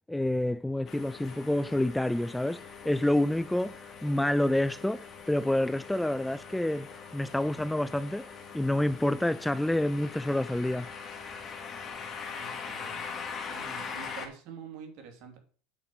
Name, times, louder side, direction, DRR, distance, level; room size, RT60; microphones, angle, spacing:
voice 1, 0.1-10.9, left 1 dB, 5° left, 0.4 m, -28 dB
sound 1, 0.9-14.3, left 5 dB, 30° left, 2.4 m, -42 dB
voice 2, 12.4-13.1 13.5-15.4, right 6 dB, 60° right, 3.3 m, -46 dB
8.6 x 5.2 x 7.8 m
supercardioid pair, 115°, 0 cm